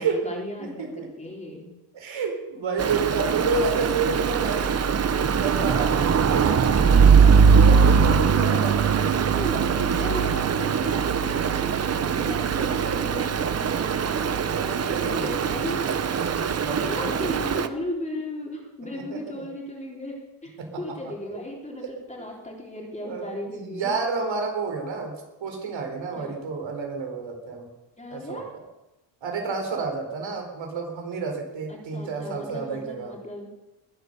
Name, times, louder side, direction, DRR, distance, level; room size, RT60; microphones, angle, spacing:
voice 1, 0.0-1.7 5.8-7.6 8.5-8.7 9.0-15.8 16.9-24.0 26.2-26.7 28.0-28.5 31.7-33.5, left 1 dB, 15° left, -1 dB, 3.8 m, -36 dB
voice 2, 0.6-1.1 1.9-6.6 7.3-8.8 11.6-11.7 12.0-12.2 13.8-17.3 18.9-19.5 20.6-20.7 23.0-25.1 25.4-27.7 28.1-28.4 29.2-33.1, right 4 dB, 70° right, 2 dB, 4.5 m, -30 dB
Stream, 2.8-17.7, right 6 dB, 35° right, 0.8 m, -21 dB
21.0 x 9.6 x 6.8 m, 0.99 s
wide cardioid pair, 155°, 47 cm